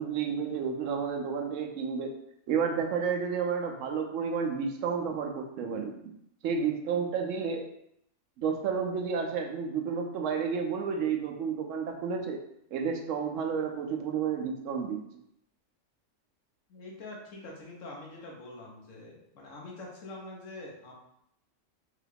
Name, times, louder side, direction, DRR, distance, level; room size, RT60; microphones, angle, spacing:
voice 1, 0.0-2.1 2.5-5.9 6.4-7.7 8.4-12.4 12.7-15.0, right 6 dB, 75° right, 2 dB, 0.9 m, -31 dB
voice 2, 16.7-20.9, left 2 dB, 75° left, -3 dB, 1.2 m, -45 dB
3.5 x 2.3 x 3.3 m, 0.75 s
omnidirectional pair, 1.3 m